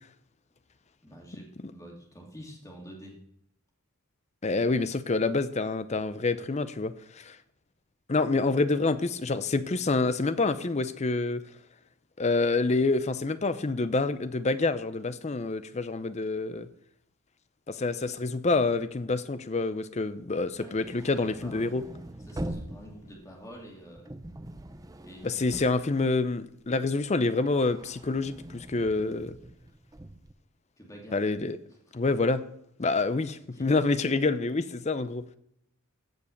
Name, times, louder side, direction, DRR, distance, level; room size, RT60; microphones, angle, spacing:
voice 1, 1.0-3.2 20.6-21.7 22.3-24.1 25.0-25.7 30.8-31.2 33.5-33.7, equal, 15° left, 2.6 m, -47 dB
voice 2, 4.4-7.4 8.1-11.4 12.2-16.7 17.7-21.8 25.2-29.4 31.1-31.6 31.9-32.4 32.8-35.3, left 3 dB, 30° left, 0.5 m, -27 dB
sound 1, 20.6-26.7 27.0-30.3, right 1 dB, 15° right, 0.6 m, -43 dB
15.5 x 5.4 x 6.5 m
head